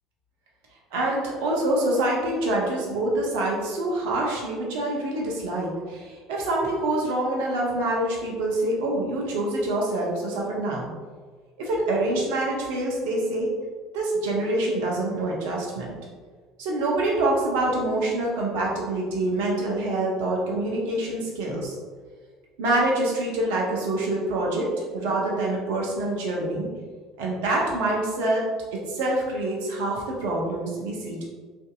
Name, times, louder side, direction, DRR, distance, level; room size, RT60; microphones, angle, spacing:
voice 1, 0.9-10.9 11.6-13.5 13.9-15.9 16.6-21.8 22.6-24.7 24.9-26.7 27.2-28.4 28.9-31.2, right 1 dB, 70° right, -2 dB, 0.6 m, -26 dB
2.6 x 2.6 x 2.3 m, 1.5 s
hypercardioid pair, 65°, 0 cm